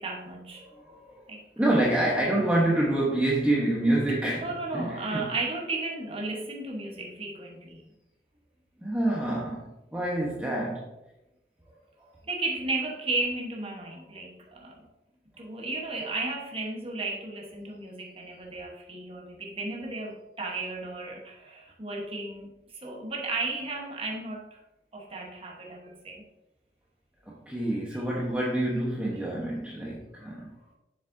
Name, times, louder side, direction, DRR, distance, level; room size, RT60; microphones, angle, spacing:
voice 1, 0.0-0.6 1.3-1.4 4.4-7.8 12.3-14.8 15.4-24.6 24.9-26.2 27.9-28.0, right 2 dB, 35° right, -1 dB, 1.1 m, -34 dB
voice 2, 0.6-5.3 8.8-10.9 27.3-30.5, right 1 dB, 10° right, -5 dB, 1.0 m, -27 dB
7.3 x 7.1 x 2.6 m, 0.95 s
head